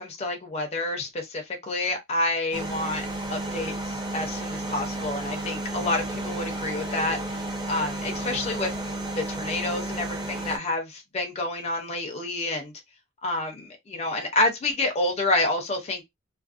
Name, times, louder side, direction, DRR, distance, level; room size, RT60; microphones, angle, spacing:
voice 1, 0.0-8.7 9.2-12.7 13.2-16.0, left 2 dB, 30° left, 0.6 m, -29 dB
sound 1, 2.5-10.6, right 1 dB, 20° right, 0.7 m, -32 dB
2.5 x 2.1 x 2.4 m
head